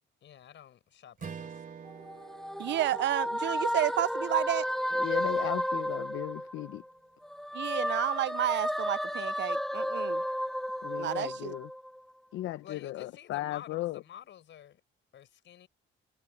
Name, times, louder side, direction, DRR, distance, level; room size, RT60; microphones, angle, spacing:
voice 1, 0.2-1.6 12.6-14.8 15.1-15.7, left 10 dB, 70° left, 5.4 m, -50 dB
Strum, 1.2-5.8, right 6 dB, 45° right, 3.0 m, -48 dB
sound 1, 1.9-6.9 7.2-12.0, equal, ahead, 0.6 m, -33 dB
voice 2, 2.6-4.7 7.5-10.2 11.0-11.5, right 13 dB, 65° right, 0.5 m, -31 dB
voice 3, 4.9-6.8 10.8-11.7 12.3-14.0, left 15 dB, 85° left, 0.8 m, -36 dB
cardioid pair, 90°, 20 cm